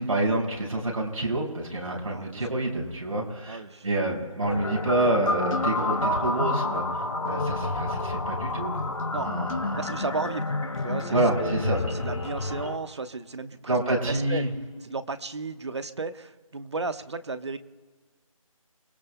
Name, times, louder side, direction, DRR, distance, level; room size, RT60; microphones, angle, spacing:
voice 1, 0.0-8.7 9.1-10.0 11.1-11.8 13.7-14.5, right 2 dB, 70° right, -1 dB, 5.9 m, -28 dB
voice 2, 1.9-2.4 3.5-3.8 9.1-9.3 9.8-10.5 10.8-13.8 14.1-14.4 14.8-17.6, right 3 dB, 50° right, 10 dB, 1.1 m, -34 dB
sound 1, 4.4-12.8, left 2 dB, 65° left, 2.4 m, -29 dB
29.5 x 20.5 x 2.3 m, 1.5 s
figure-of-eight pair, 170°, 18 cm